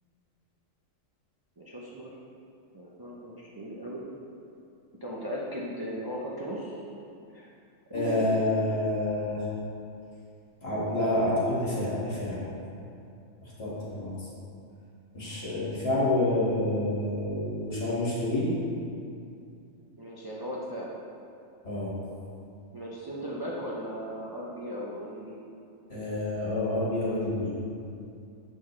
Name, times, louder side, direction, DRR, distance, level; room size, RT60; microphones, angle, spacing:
voice 1, 1.6-2.1 2.7-4.0 4.9-6.8 7.3-7.5 7.9-8.3 16.0-16.2 20.0-20.9 22.7-25.4, equal, 25° right, -6 dB, 0.5 m, -37 dB
voice 2, 7.9-9.5 10.6-12.4 13.4-14.3 15.1-18.6 21.6-21.9 25.9-27.5, left 1 dB, 50° left, -8 dB, 2.1 m, -28 dB
7.4 x 5.9 x 3.2 m, 2.5 s
omnidirectional pair, 1.4 m